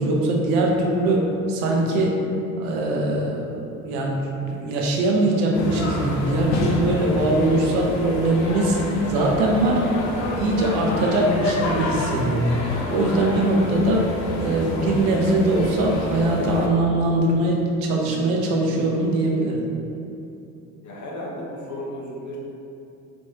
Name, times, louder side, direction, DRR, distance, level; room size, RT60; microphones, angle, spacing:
voice 1, 0.0-2.2 2.6-8.8 9.1-9.9 10.4-12.5 12.9-14.1 14.4-19.7, right 2 dB, 65° right, -1 dB, 0.8 m, -21 dB
sound 1, 5.5-16.7, left 2 dB, 65° left, 0.7 m, -28 dB
voice 2, 20.8-22.4, left 1 dB, 40° left, -4 dB, 1.1 m, -34 dB
4.3 x 3.0 x 2.9 m, 2.7 s
figure-of-eight pair, 55°, 42 cm